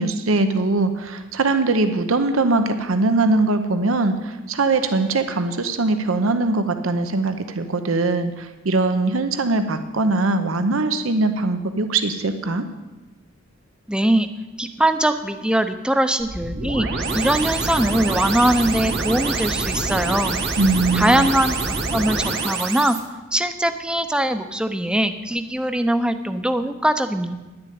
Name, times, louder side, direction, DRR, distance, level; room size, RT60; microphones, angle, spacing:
voice 1, 0.0-12.7 20.6-21.3, right 3 dB, 80° right, 9 dB, 0.8 m, -21 dB
voice 2, 13.9-14.3 14.6-16.9 17.1-20.4 20.9-23.0 23.3-27.4, right 1 dB, 5° right, 9 dB, 0.6 m, -21 dB
sound 1, 16.2-23.0, right 3 dB, 55° right, 1.4 m, -25 dB
10.5 x 7.0 x 9.3 m, 1.2 s
head